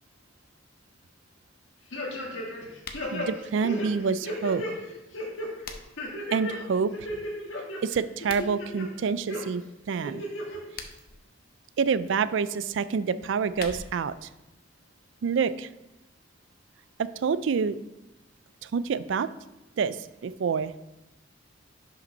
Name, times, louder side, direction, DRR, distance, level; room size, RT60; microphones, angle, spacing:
sound 1, 1.9-2.7 2.9-4.7 5.1-5.5 6.0-6.6 6.9-7.8 8.2-8.9 9.3-9.4 10.0-10.6 11.0-11.1, equal, 85° left, 1.6 m, -34 dB
sound 2, 2.8-3.1 5.1-6.1 8.1-8.5 10.5-11.2 13.2-14.1, left 5 dB, 50° left, 0.7 m, -42 dB
voice 1, 3.1-4.6 6.3-6.9 7.8-9.6 9.9-10.2 11.8-14.3 15.2-15.7 17.0-17.7 18.7-19.3 19.8-20.0 20.2-20.7, right 5 dB, 70° right, 15 dB, 0.4 m, -27 dB
5.8 x 5.2 x 5.3 m, 0.98 s
head